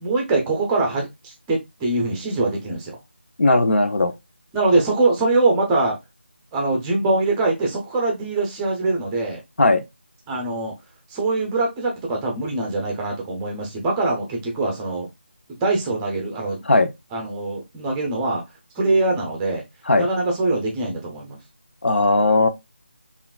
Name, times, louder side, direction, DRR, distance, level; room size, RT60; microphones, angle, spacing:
voice 1, 0.0-3.0 4.5-6.0 6.5-9.4 10.3-10.7 11.1-15.1 15.6-16.6 17.1-18.4 18.8-19.6 20.0-21.4, right 2 dB, 10° right, 0.6 m, -23 dB
voice 2, 3.4-4.1 9.6-9.8 16.7-16.9 19.9-20.1 21.8-22.5, left 2 dB, 70° left, 0.8 m, -17 dB
5.6 x 2.5 x 2.3 m
figure-of-eight pair, 170°, 6 cm